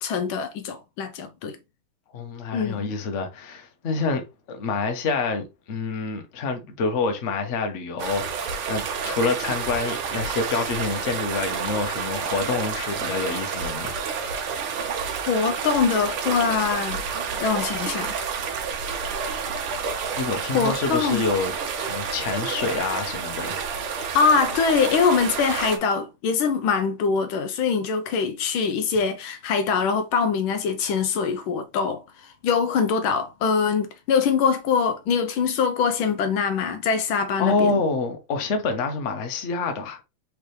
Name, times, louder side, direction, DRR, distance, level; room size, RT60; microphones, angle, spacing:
voice 1, 0.0-1.6 2.5-2.9 15.3-17.0 17.4-18.1 20.5-21.2 24.1-37.8, left 5 dB, 80° left, 1.4 m, -23 dB
voice 2, 2.1-4.2 4.5-14.0 20.2-23.6 37.4-40.0, left 4 dB, 45° left, 1.0 m, -27 dB
sound 1, 8.0-25.8, right 6 dB, 85° right, 1.8 m, -29 dB
4.8 x 3.3 x 3.1 m
omnidirectional pair, 2.3 m